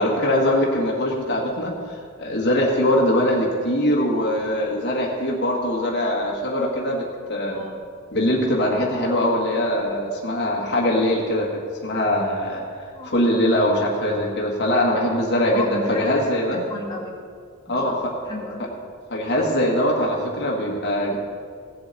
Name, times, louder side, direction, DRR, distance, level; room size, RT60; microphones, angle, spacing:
voice 1, 0.0-7.6 8.1-16.6 17.7-18.0 19.1-21.2, left 1 dB, 50° left, -3 dB, 1.7 m, -22 dB
voice 2, 15.5-16.2 16.7-17.1 17.7-18.6, left 3 dB, 20° left, -4 dB, 2.2 m, -33 dB
16.5 x 7.8 x 4.2 m, 2.1 s
head